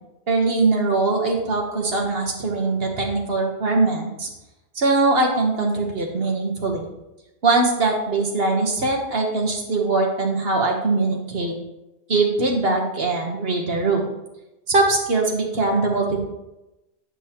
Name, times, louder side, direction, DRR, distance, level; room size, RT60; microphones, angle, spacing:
voice 1, 0.3-4.3 4.7-6.8 7.4-11.6 12.1-14.0 14.7-16.2, right 3 dB, 55° right, 1 dB, 1.3 m, -21 dB
9.5 x 5.4 x 2.9 m, 0.96 s
omnidirectional pair, 1.2 m